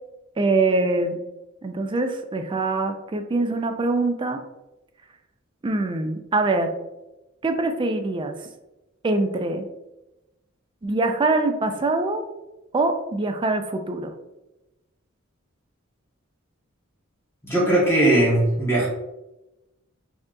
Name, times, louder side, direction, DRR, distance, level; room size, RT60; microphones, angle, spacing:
voice 1, 0.4-1.2 1.6-4.4 5.6-6.7 7.4-8.3 9.0-9.6 10.8-12.2 12.7-14.1, right 2 dB, 25° right, 6 dB, 0.3 m, -23 dB
voice 2, 17.4-18.9, right 1 dB, 10° left, -6 dB, 1.2 m, -19 dB
4.3 x 2.9 x 2.5 m, 0.98 s
head